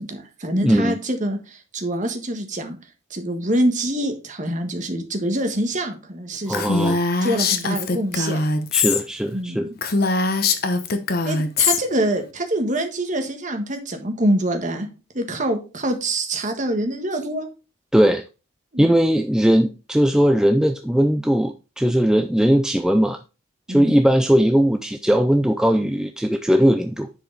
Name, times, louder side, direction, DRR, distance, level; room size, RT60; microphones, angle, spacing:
voice 1, 0.0-2.8 3.1-6.9 7.2-8.4 9.3-9.8 11.2-14.9 15.1-17.5 18.7-18.9 23.7-23.9, right 1 dB, 35° right, 5 dB, 1.5 m, -25 dB
voice 2, 0.6-1.0 6.5-7.0 8.7-9.7 17.9-18.2 18.8-23.2 23.7-27.1, equal, 5° right, 7 dB, 0.3 m, -19 dB
Female speech woman speaking, 6.5-9.0 9.3-9.4 9.8-11.8, left 4 dB, 45° left, 1.0 m, -21 dB
10.0 x 4.9 x 4.0 m, 0.32 s
head